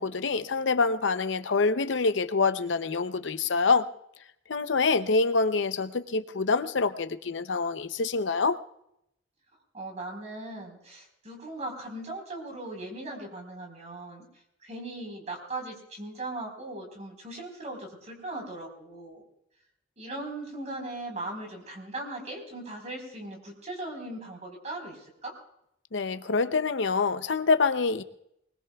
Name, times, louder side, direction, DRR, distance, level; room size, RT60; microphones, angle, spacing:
voice 1, 0.0-3.9 4.5-8.6 25.9-28.0, left 4 dB, 75° left, 11 dB, 0.7 m, -26 dB
voice 2, 9.7-14.2 14.6-19.2 20.0-25.4, right 2 dB, 40° right, 2 dB, 4.4 m, -39 dB
24.0 x 20.5 x 2.3 m, 0.77 s
head